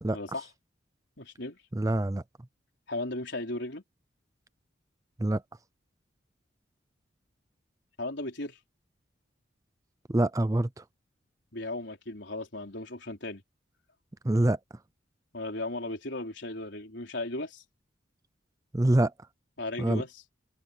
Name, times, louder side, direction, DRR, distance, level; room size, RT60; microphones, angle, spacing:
voice 1, 0.1-0.5 1.2-1.6 2.9-3.8 8.0-8.6 11.5-13.4 15.3-17.6 19.6-20.2, left 2 dB, 65° left, 4.5 m, -36 dB
voice 2, 1.7-2.2 5.2-5.4 10.1-10.7 14.2-14.6 18.7-19.1 19.8-20.0, right 1 dB, 15° right, 0.5 m, -25 dB
open air
head